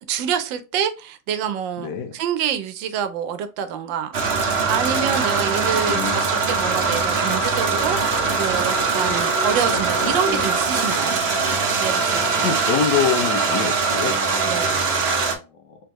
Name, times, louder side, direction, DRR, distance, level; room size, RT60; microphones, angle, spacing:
voice 1, 0.1-4.1 4.5-11.2 11.7-12.5 14.4-15.0, right 8 dB, 80° right, 1.4 m, -27 dB
voice 2, 1.8-2.1 5.8-6.2 12.3-14.2 15.2-15.8, left 7 dB, 70° left, 1.3 m, -25 dB
sound 1, 4.1-15.4, right 4 dB, 50° right, 0.7 m, -22 dB
3.6 x 3.5 x 2.9 m
omnidirectional pair, 2.0 m